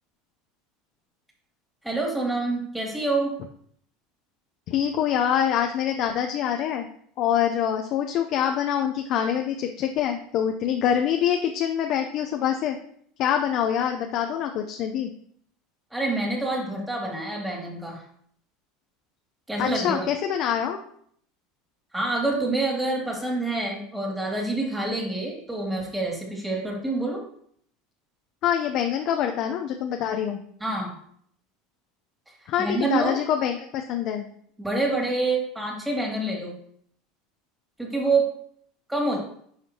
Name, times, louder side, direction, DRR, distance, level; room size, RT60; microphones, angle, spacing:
voice 1, 1.8-3.3 15.9-18.0 19.5-20.1 21.9-27.2 30.6-30.9 32.6-33.2 34.6-36.5 37.8-38.3 38.9-39.2, right 2 dB, 5° right, -1 dB, 2.4 m, -27 dB
voice 2, 4.7-6.9 7.2-12.8 13.2-15.1 19.6-20.8 28.4-30.4 32.5-34.3, left 9 dB, 55° left, 4 dB, 0.6 m, -25 dB
10.5 x 5.1 x 2.8 m, 0.65 s
supercardioid pair, 110°, 0 cm